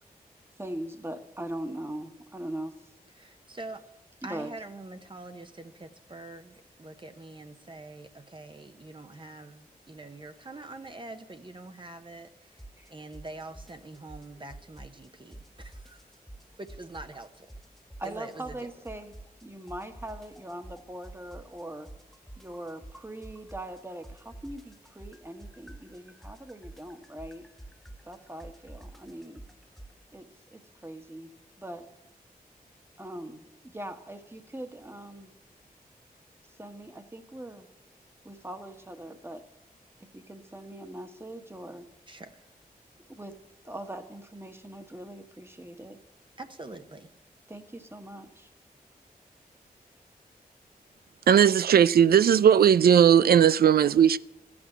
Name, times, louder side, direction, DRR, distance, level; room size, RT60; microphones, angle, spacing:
voice 1, 0.6-2.8 4.3-4.5 12.8-12.9 18.0-19.1 19.4-21.9 22.4-27.5 28.0-29.4 30.1-31.3 31.6-31.9 33.0-35.3 36.6-37.7 38.2-39.4 40.1-41.9 43.1-43.4 43.6-46.0 47.5-48.5, right 1 dB, 15° right, 1.3 m, -41 dB
voice 2, 3.1-3.8 4.2-16.1 16.6-17.5 18.0-18.7 42.1-42.5 46.4-47.1, right 2 dB, 30° right, 0.9 m, -44 dB
sound 1, 12.6-12.9 13.1-15.1 15.3-17.2 17.5-19.4 19.7-23.8 24.0-29.9, right 1 dB, ahead, 0.5 m, -47 dB
voice 3, 51.3-54.2, right 8 dB, 80° right, 0.4 m, -18 dB
13.5 x 6.1 x 9.0 m
cardioid pair, 60°, 16 cm